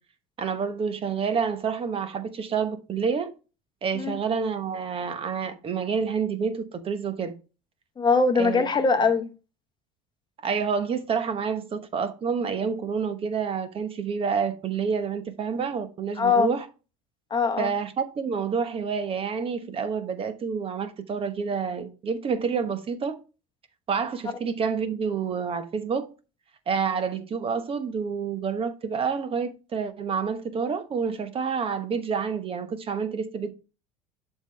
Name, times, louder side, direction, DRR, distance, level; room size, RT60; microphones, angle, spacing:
voice 1, 0.4-3.3 3.8-7.3 8.3-8.7 10.4-16.7 17.6-23.2 23.9-26.1 26.7-33.5, right 6 dB, 35° right, 1.0 m, -28 dB
voice 2, 8.0-9.3 16.2-16.5 17.3-17.7, left 4 dB, 30° left, 0.9 m, -22 dB
11.0 x 3.7 x 3.3 m
supercardioid pair, 105°, 16 cm